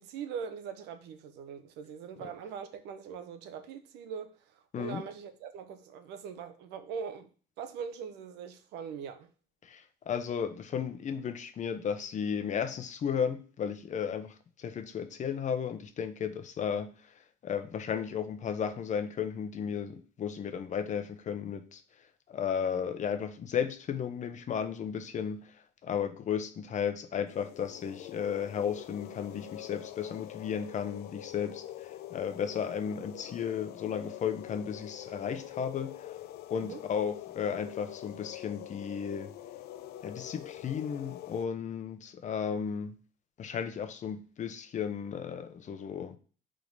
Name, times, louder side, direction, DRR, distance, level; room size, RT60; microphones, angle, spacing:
voice 1, 0.0-7.3 7.6-9.3 36.6-36.8, right 7 dB, 85° right, 0.9 m, -41 dB
voice 2, 4.7-5.0 9.6-17.1 17.4-21.8 22.3-36.2 36.5-39.3 40.0-43.0 43.4-46.2, left 7 dB, 45° left, 0.9 m, -34 dB
sound 1, 27.3-41.4, left 13 dB, 70° left, 0.5 m, -45 dB
5.1 x 3.8 x 5.3 m
cardioid pair, 110°, 17 cm